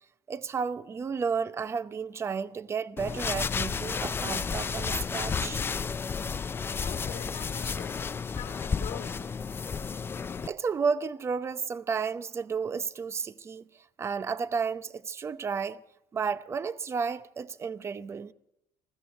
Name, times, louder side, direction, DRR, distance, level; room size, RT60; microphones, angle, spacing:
voice 1, 0.3-5.6 10.4-15.8 16.1-18.3, right 5 dB, 25° right, 0.7 m, -32 dB
sound 1, 3.0-10.5, left 5 dB, 20° left, 0.4 m, -32 dB
voice 2, 6.8-9.3, left 11 dB, 70° left, 2.3 m, -44 dB
21.0 x 14.5 x 4.2 m
cardioid pair, 130°, 11 cm